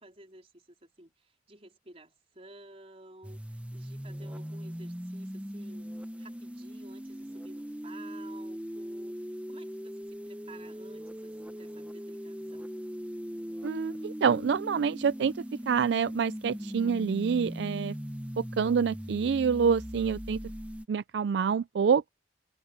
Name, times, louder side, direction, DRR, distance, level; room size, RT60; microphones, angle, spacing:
voice 1, 0.0-12.7, right 2 dB, 35° right, 4.2 m, -53 dB
sound 1, 3.2-20.9, equal, 5° right, 0.9 m, -40 dB
voice 2, 13.6-15.3 15.7-17.9 18.4-20.4 20.9-22.1, right 6 dB, 65° right, 0.3 m, -27 dB
head